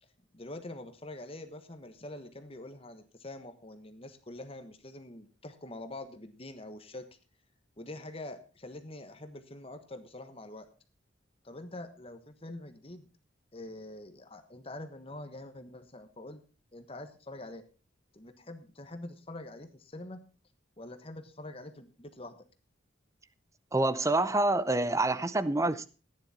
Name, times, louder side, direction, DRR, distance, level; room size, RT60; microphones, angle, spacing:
voice 1, 0.3-7.1 7.8-10.7 11.4-13.1 13.5-16.4 16.7-17.6 18.1-20.3 20.8-22.4, left 2 dB, 30° left, 1.2 m, -45 dB
voice 2, 23.7-25.9, right 2 dB, 15° right, 0.7 m, -27 dB
15.0 x 10.0 x 4.2 m
head